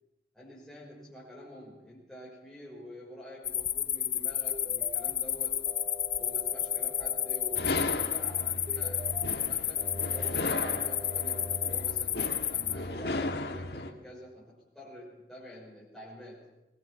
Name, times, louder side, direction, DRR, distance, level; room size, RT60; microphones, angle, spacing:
voice 1, 0.3-5.6 6.2-9.9 10.1-12.2 12.5-16.4, left 1 dB, ahead, -8 dB, 5.8 m, -48 dB
sound 1, 3.4-12.7, left 10 dB, 30° left, 0.8 m, -31 dB
sound 2, 4.5-5.1 5.7-7.7 8.7-9.3 9.8-11.8, equal, 25° right, 0.9 m, -45 dB
sound 3, 7.5-13.9, left 2 dB, 65° left, 1.7 m, -35 dB
22.0 x 21.0 x 5.8 m, 0.92 s
head